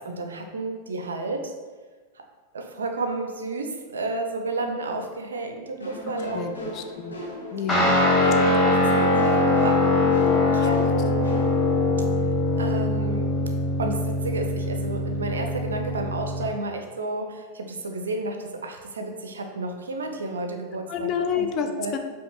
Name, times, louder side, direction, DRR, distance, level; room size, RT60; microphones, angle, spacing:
voice 1, 0.0-1.5 2.5-6.6 8.2-11.3 12.6-13.3 13.8-21.1 21.3-21.5 21.8-21.9, right 2 dB, 70° right, 4 dB, 0.4 m, -31 dB
sound 1, 5.8-11.8, left 2 dB, 75° left, 0.7 m, -36 dB
voice 2, 6.3-7.2 7.5-8.0 10.6-10.7 20.9-22.0, left 7 dB, 35° left, 6 dB, 0.3 m, -29 dB
Guitar, 7.7-16.5, left 2 dB, 15° left, 0.9 m, -22 dB
5.0 x 2.3 x 2.9 m, 1.4 s
figure-of-eight pair, 90°, 0 cm